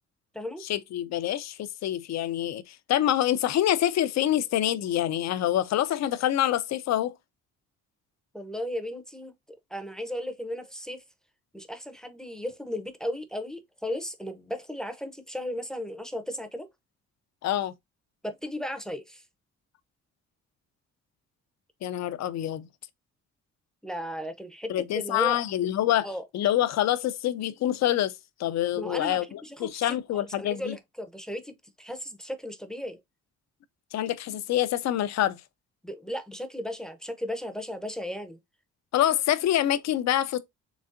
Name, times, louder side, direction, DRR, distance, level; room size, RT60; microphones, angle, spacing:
voice 1, 0.6-7.1 17.4-17.7 21.8-22.7 24.7-26.1 26.3-28.1 28.4-30.8 33.9-35.4 38.9-40.4, left 12 dB, 65° left, 0.5 m, -26 dB
voice 2, 8.3-9.3 9.7-11.0 11.5-16.7 18.2-19.2 23.8-25.4 26.0-26.2 28.8-29.8 30.4-33.0 35.8-38.4, left 1 dB, ahead, 0.6 m, -35 dB
3.9 x 3.3 x 2.5 m
cardioid pair, 90°, 30 cm